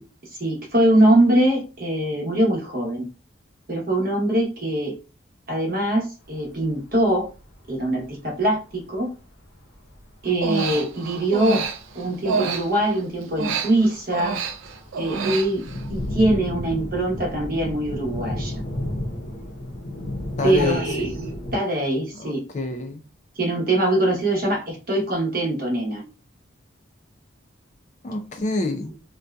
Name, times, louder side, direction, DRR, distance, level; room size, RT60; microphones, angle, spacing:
voice 1, 0.4-3.1 3.7-4.9 5.5-7.3 7.7-9.1 10.2-11.6 11.9-14.4 15.0-15.6 15.9-18.6 20.4-22.4 23.4-26.0, right 1 dB, 45° right, 0.8 m, -22 dB
sound 1, 6.3-6.4 6.6-6.7 6.9-7.4 7.6-7.7 7.9-8.3 8.9-9.0 9.4-9.5 9.9-10.1 10.6-11.0 11.4-11.9 12.2-13.2 13.5-21.6, left 1 dB, 70° left, 0.7 m, -32 dB
Human voice, 10.3-13.0 13.3-15.9, right 5 dB, 80° right, 0.4 m, -28 dB
voice 2, 20.4-21.1 22.2-23.0 28.0-28.9, left 3 dB, 35° left, 0.4 m, -27 dB
2.6 x 2.3 x 2.2 m
head